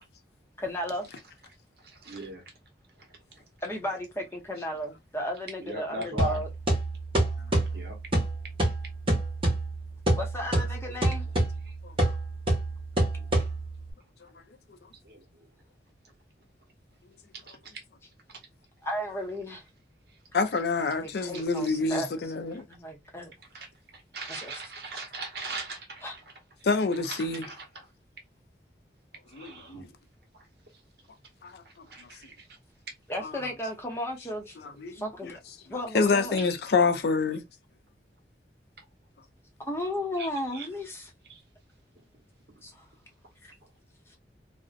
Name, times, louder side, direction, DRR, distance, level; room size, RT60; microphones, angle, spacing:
voice 1, 0.6-1.1 3.6-6.5 10.2-11.3 18.8-19.6 20.8-22.1 22.4-23.3 24.3-24.6 26.0-26.1 33.1-34.6 34.9-35.3 35.7-36.4 39.6-41.1 42.6-42.9 43.4-43.5 44.1-44.2, left 1 dB, 15° left, 0.6 m, -34 dB
voice 2, 1.8-2.4 5.6-6.4 7.7-8.0 11.6-11.7 13.2-13.5 15.0-15.5 17.5-17.7 18.3-18.4 23.5-26.1 27.1-27.9 29.3-29.9 31.6-32.5 40.2-40.7 41.3-41.4, right 1 dB, 60° right, 0.9 m, -39 dB
sound 1, 6.2-13.9, right 1 dB, 30° right, 0.8 m, -28 dB
voice 3, 20.3-22.7 26.6-27.4 29.3-29.9 31.4-31.6 34.8-34.9 35.9-37.4, left 4 dB, 65° left, 0.4 m, -26 dB
2.5 x 2.0 x 2.4 m
head